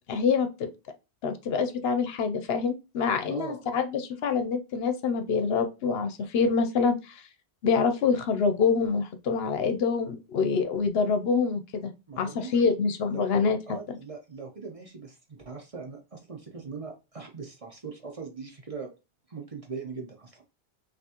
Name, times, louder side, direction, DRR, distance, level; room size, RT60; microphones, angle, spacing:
voice 1, 0.1-0.7 1.2-7.1 7.6-13.6 13.9-14.0, left 5 dB, 70° left, 0.8 m, -26 dB
voice 2, 3.3-3.6 12.1-12.7 13.1-13.2 13.7-18.9 19.3-20.5, right 5 dB, 35° right, 0.8 m, -40 dB
5.8 x 2.5 x 2.8 m
omnidirectional pair, 1.1 m